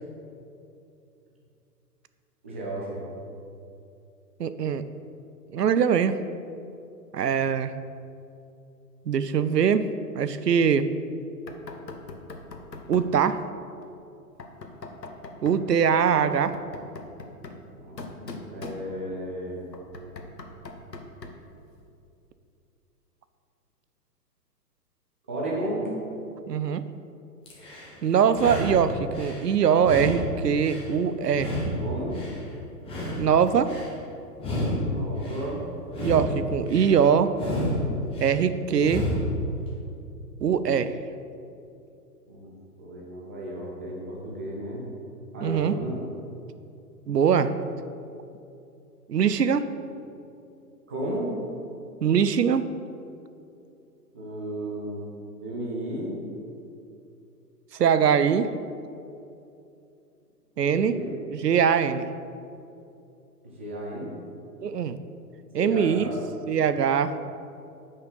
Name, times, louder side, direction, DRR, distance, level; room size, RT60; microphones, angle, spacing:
voice 1, 2.4-3.0 17.8-19.6 25.3-25.9 31.8-32.2 34.6-35.6 42.3-42.5 42.8-44.8 45.3-46.0 50.9-51.3 54.1-55.0 55.4-56.2 60.6-61.1 63.4-64.1 65.6-66.2, right 1 dB, 10° right, -4 dB, 0.4 m, -34 dB
voice 2, 4.4-4.8 5.5-6.2 7.1-7.7 9.1-10.9 12.9-13.4 15.4-16.5 26.5-26.8 28.0-31.5 33.2-33.7 36.0-37.3 38.2-39.1 40.4-40.9 45.4-45.8 47.1-47.5 49.1-49.7 52.0-52.7 57.8-58.5 60.6-61.0 61.3-62.1 64.6-65.0 65.5-66.1 66.5-67.1, right 7 dB, 80° right, 12 dB, 0.7 m, -22 dB
Knock, 11.5-13.2 14.4-15.7 16.3-19.2 19.7-21.5, left 3 dB, 85° left, 1.1 m, -42 dB
sound 1, 27.5-27.9 28.3-29.4 29.8-30.9 31.3-32.4 32.8-33.9 34.3-35.4 35.8-36.9 37.3-38.3 38.8-39.4, left 1 dB, 10° left, 1.7 m, -30 dB
9.3 x 5.5 x 5.6 m, 2.7 s
figure-of-eight pair, 120°, 48 cm